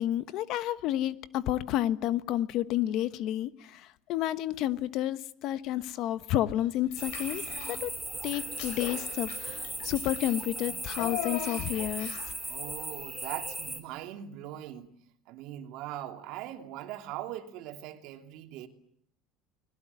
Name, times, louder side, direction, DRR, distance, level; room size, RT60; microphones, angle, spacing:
voice 1, 0.0-3.8 4.1-7.4 7.7-7.9 8.2-12.1, left 13 dB, 55° left, 1.2 m, -30 dB
Child speech kid speaking / Bathtub (filling or washing), 6.9-7.8 8.2-12.4, left 9 dB, 85° left, 4.8 m, -40 dB
sound 1, 7.0-13.8, right 2 dB, 5° right, 3.3 m, -38 dB
voice 2, 12.5-14.9 15.3-18.7, right 12 dB, 60° right, 3.0 m, -40 dB
30.0 x 20.5 x 9.6 m
cardioid pair, 150°, 0 cm